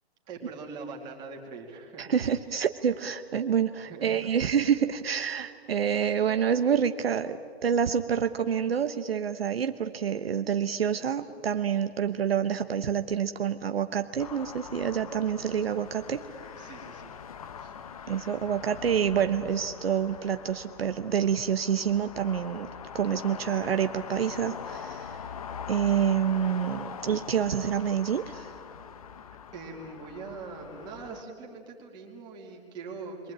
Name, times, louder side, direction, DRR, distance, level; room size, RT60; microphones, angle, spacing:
voice 1, 0.3-2.1 3.8-4.3 16.6-17.2 17.6-17.8 29.5-33.3, right 4 dB, 15° right, 0 dB, 2.6 m, -42 dB
voice 2, 2.0-16.2 18.1-22.7 22.9-25.2 25.7-28.5, right 8 dB, 60° right, 9 dB, 1.2 m, -27 dB
sound 1, 14.2-31.2, left 7 dB, 35° left, 0.9 m, -43 dB
28.5 x 23.5 x 8.9 m, 2.3 s
hypercardioid pair, 170°, 33 cm